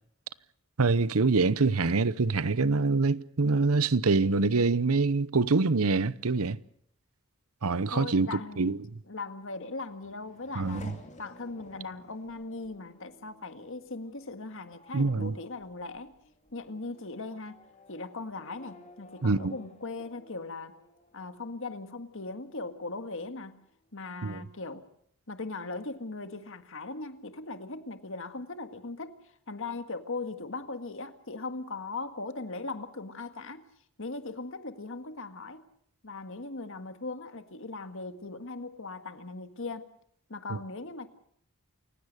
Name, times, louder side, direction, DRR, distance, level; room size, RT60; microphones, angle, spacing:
voice 1, 0.8-6.6 7.6-8.3 8.6-8.8 10.6-10.9 14.9-15.3 19.2-19.5 24.2-24.4 40.5-40.6, right 3 dB, 75° right, 0.8 m, -25 dB
voice 2, 7.9-8.8 9.1-10.9 11.2-16.1 16.5-17.6 17.9-20.8 21.1-23.5 23.9-24.9 25.3-33.7 34.0-35.6 36.0-39.9 40.3-41.1, left 3 dB, 60° left, 1.8 m, -39 dB
Race car auto racing / Accelerating revving vroom, 9.4-22.5 22.9-23.6, left 2 dB, 35° left, 2.6 m, -54 dB
28.5 x 16.5 x 6.6 m
head